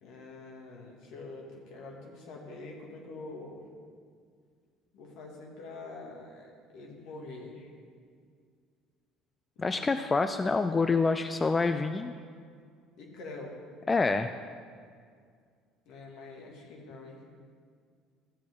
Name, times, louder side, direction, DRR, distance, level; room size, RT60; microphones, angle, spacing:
voice 1, 0.0-3.6 4.9-7.7 9.6-10.3 13.0-13.6 15.9-17.2, left 3 dB, 70° left, 0 dB, 1.8 m, -45 dB
voice 2, 9.6-12.1 13.9-14.3, left 4 dB, 25° left, 8 dB, 0.4 m, -27 dB
13.5 x 7.5 x 3.7 m, 2.1 s
hypercardioid pair, 70°, 0 cm